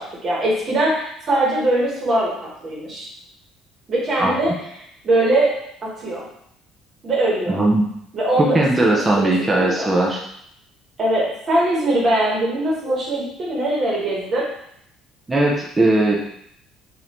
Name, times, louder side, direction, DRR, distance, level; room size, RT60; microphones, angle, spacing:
voice 1, 0.0-2.3 2.6-3.1 3.9-4.5 5.0-5.5 5.8-6.2 7.0-7.6 8.1-9.9 11.0-14.5, right 1 dB, 30° right, -4 dB, 1.2 m, -21 dB
voice 2, 4.2-4.5 7.5-7.8 8.4-10.2 15.3-16.2, right 2 dB, 10° right, -2 dB, 0.5 m, -18 dB
5.1 x 2.5 x 2.9 m, 0.73 s
cardioid pair, 175°, 0 cm